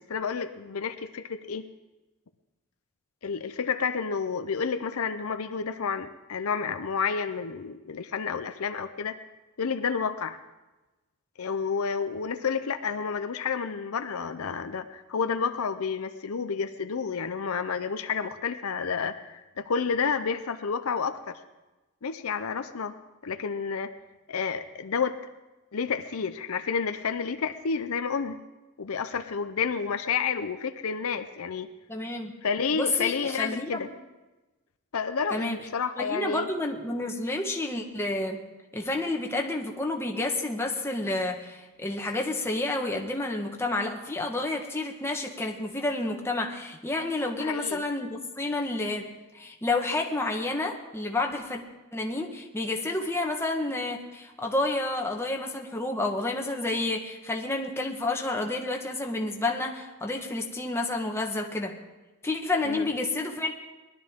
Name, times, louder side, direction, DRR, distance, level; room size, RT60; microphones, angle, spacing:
voice 1, 0.1-1.7 3.2-9.2 9.6-10.4 11.4-21.4 22.0-23.0 23.2-23.9 24.3-25.2 25.7-28.4 28.8-31.7 32.4-33.9 34.9-36.5 47.4-47.8 62.6-62.9, left 6 dB, 75° left, 10 dB, 0.6 m, -30 dB
voice 2, 31.9-32.3 32.7-33.9 35.3-35.6 36.0-38.4 38.7-51.6 51.9-61.8 62.2-63.5, left 2 dB, 10° left, 1 dB, 1.3 m, -30 dB
19.5 x 12.0 x 3.7 m, 1.1 s
head